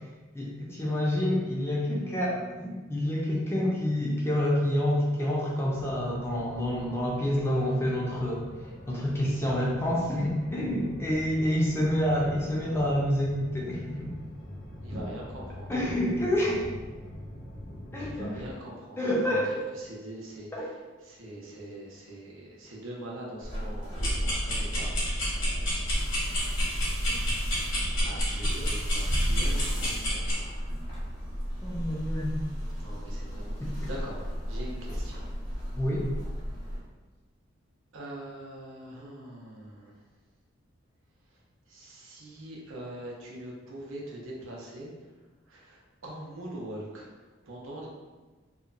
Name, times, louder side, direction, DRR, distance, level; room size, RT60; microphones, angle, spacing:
voice 1, 0.3-8.5 8.9-14.1 15.7-16.6 17.9-18.3 19.0-19.5 20.5-20.7 27.1-27.2 31.6-32.4 33.6-33.9 35.7-36.0, left 1 dB, 10° left, -4 dB, 0.4 m, -28 dB
sound 1, 5.7-18.5, left 1 dB, 60° left, 0.6 m, -44 dB
voice 2, 14.8-15.7 18.0-25.0 28.0-30.5 32.8-35.3 35.6-35.7 36.6-36.8 37.9-40.0 41.2-44.9 45.5-47.2 47.4-47.9, right 1 dB, 75° right, -3 dB, 0.6 m, -42 dB
sound 2, 23.4-36.8, equal, 25° right, 0.7 m, -36 dB
sound 3, 23.9-30.3, equal, 80° left, 1.0 m, -28 dB
2.8 x 2.1 x 2.4 m, 1.3 s
head